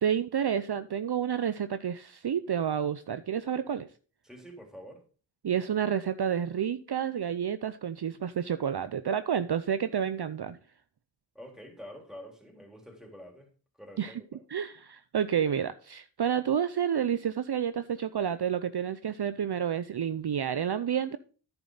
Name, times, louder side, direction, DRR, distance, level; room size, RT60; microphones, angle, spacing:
voice 1, 0.0-3.9 5.4-10.6 14.0-14.2 14.5-21.2, right 8 dB, 55° right, 0.6 m, -30 dB
voice 2, 4.2-5.0 11.3-13.5 13.8-14.4, equal, ahead, 3.6 m, -47 dB
10.5 x 8.2 x 3.9 m
wide cardioid pair, 45°, 47 cm